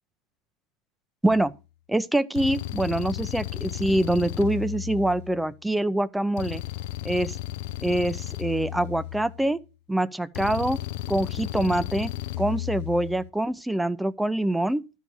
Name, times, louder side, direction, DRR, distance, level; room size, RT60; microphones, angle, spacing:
sound 1, 1.3-1.6 2.3-5.6 6.4-9.6 10.3-13.3, left 14 dB, 75° left, 0.5 m, -34 dB
voice 1, 1.9-6.6 7.0-7.4 7.8-9.6 9.9-10.8 11.1-12.1 12.4-14.8, right 1 dB, 5° right, 0.6 m, -25 dB
12.0 x 5.6 x 4.6 m
supercardioid pair, 105°, 0 cm